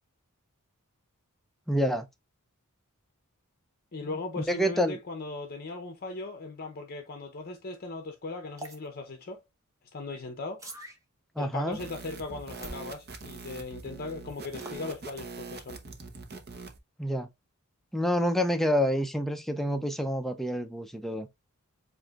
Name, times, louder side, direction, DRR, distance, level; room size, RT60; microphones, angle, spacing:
voice 1, 1.7-2.1 4.5-5.0 11.4-11.8 17.0-17.3 17.9-21.3, equal, ahead, 0.5 m, -27 dB
voice 2, 3.9-9.4 9.9-10.6 11.4-15.8, left 3 dB, 45° left, 0.7 m, -38 dB
sound 1, 8.6-8.8 10.6-11.0 12.6-12.8 14.6-14.8, right 1 dB, 15° right, 0.9 m, -42 dB
sound 2, 11.7-16.8, right 4 dB, 45° right, 0.9 m, -43 dB
7.7 x 2.6 x 2.3 m
head